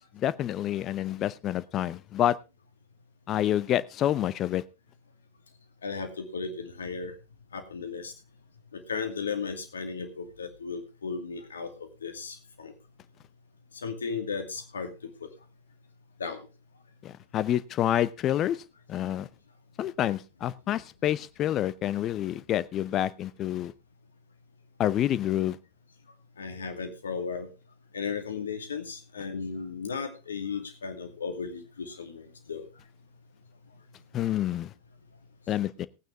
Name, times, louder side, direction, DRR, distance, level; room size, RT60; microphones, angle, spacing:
voice 1, 0.1-2.4 3.3-4.6 17.0-18.6 18.9-19.3 19.8-23.7 24.8-25.6 34.1-34.7 35.5-35.9, left 12 dB, 30° left, 0.7 m, -28 dB
voice 2, 5.8-7.1 7.5-8.1 8.7-12.7 13.8-15.1 16.2-16.4 26.4-27.5 27.9-32.6, left 5 dB, 70° left, 2.5 m, -35 dB
19.0 x 9.2 x 3.5 m
figure-of-eight pair, 90°, 0 cm